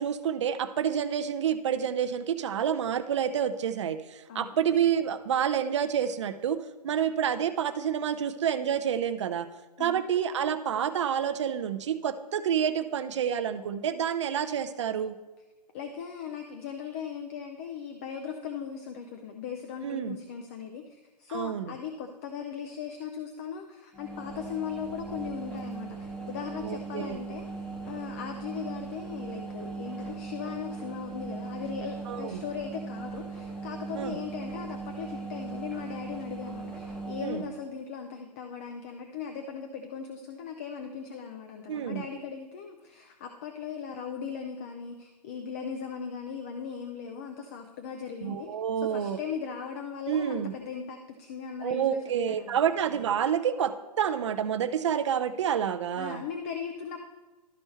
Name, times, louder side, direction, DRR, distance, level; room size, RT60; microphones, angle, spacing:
voice 1, 0.0-9.5 9.8-15.2 19.8-20.2 21.3-21.7 26.6-27.2 32.1-32.4 34.0-34.2 37.2-37.4 41.7-42.1 48.2-49.2 50.1-50.5 51.6-56.2, right 8 dB, 45° right, 9 dB, 0.6 m, -28 dB
voice 2, 15.7-48.5 48.8-52.0 52.3-52.6 56.0-57.0, left 7 dB, 20° left, 4 dB, 0.4 m, -38 dB
sound 1, 23.9-37.5, right 4 dB, 5° left, 0.9 m, -39 dB
12.5 x 4.4 x 4.3 m, 1.2 s
figure-of-eight pair, 125°, 21 cm